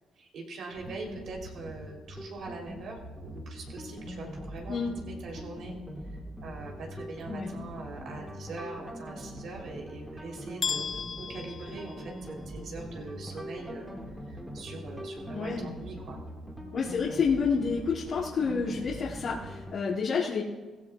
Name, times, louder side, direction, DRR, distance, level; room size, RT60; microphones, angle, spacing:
voice 1, 0.2-5.7 6.4-13.9 14.3-16.2, right 3 dB, 70° right, 0 dB, 3.4 m, -42 dB
sound 1, 0.7-19.7, equal, 10° right, 2.6 m, -42 dB
sound 2, 10.6-12.6, left 6 dB, 45° left, 0.4 m, -35 dB
voice 2, 15.3-15.7 16.7-20.4, left 5 dB, 65° left, -8 dB, 2.4 m, -29 dB
17.5 x 15.5 x 2.4 m, 1.3 s
cardioid pair, 90°, 0 cm